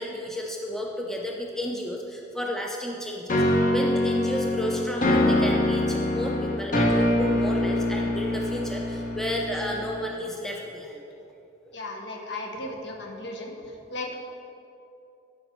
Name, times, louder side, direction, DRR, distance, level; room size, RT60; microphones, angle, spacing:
voice 1, 0.0-3.4 3.7-11.0, left 1 dB, ahead, -1 dB, 0.6 m, -32 dB
sound 1, 3.3-10.1, left 1 dB, 40° left, 1.0 m, -24 dB
voice 2, 11.7-13.5 13.9-14.2, left 2 dB, 60° left, 1 dB, 1.1 m, -35 dB
12.0 x 5.1 x 4.6 m, 2.8 s
head